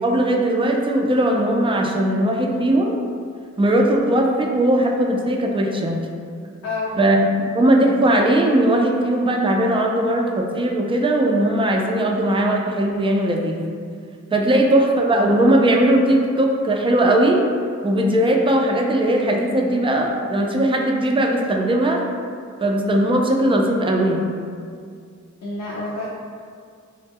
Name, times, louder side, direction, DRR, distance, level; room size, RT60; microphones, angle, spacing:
voice 1, 0.0-3.0 3.6-6.0 7.0-13.6 14.3-17.4 17.8-22.0 22.6-24.3, right 1 dB, 20° right, 1 dB, 0.3 m, -19 dB
voice 2, 6.6-7.0 14.5-14.6 25.4-26.1, left 2 dB, 65° left, -6 dB, 0.5 m, -28 dB
2.1 x 2.0 x 3.4 m, 2.2 s
cardioid pair, 55°, 31 cm